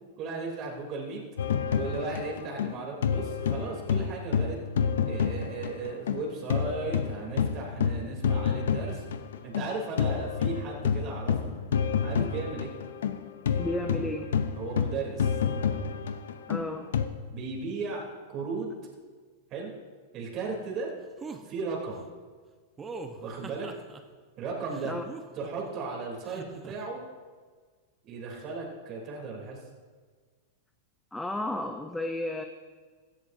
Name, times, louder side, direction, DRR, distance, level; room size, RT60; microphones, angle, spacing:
voice 1, 0.2-1.2 1.7-4.6 5.0-9.0 9.4-11.4 12.0-12.7 14.5-15.3 17.3-18.7 19.5-19.7 20.1-20.9 21.4-22.0 23.2-23.7 24.4-25.0 25.3-27.0 28.1-29.6, right 4 dB, 40° right, -2 dB, 3.2 m, -36 dB
sound 1, 1.4-6.2 6.5-17.1, left 7 dB, 80° left, 0.7 m, -28 dB
voice 2, 13.6-14.3 16.5-16.9 24.8-25.0 31.1-32.4, left 1 dB, 5° left, 5 dB, 0.7 m, -32 dB
sound 2, 21.2-21.4 22.8-24.0 24.7-25.7 26.2-26.7, right 4 dB, 20° right, 1.0 m, -42 dB
16.0 x 11.5 x 2.7 m, 1.5 s
hypercardioid pair, 120°, 0 cm